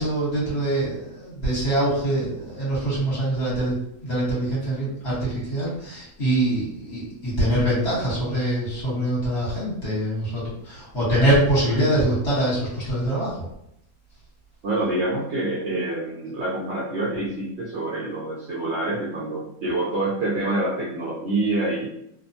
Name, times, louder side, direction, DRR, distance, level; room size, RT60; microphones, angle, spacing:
voice 1, 0.0-13.4, right 1 dB, 50° left, -8 dB, 1.5 m, -24 dB
voice 2, 14.6-21.9, right 2 dB, 65° right, -6 dB, 0.7 m, -26 dB
2.7 x 2.2 x 2.6 m, 0.77 s
omnidirectional pair, 1.5 m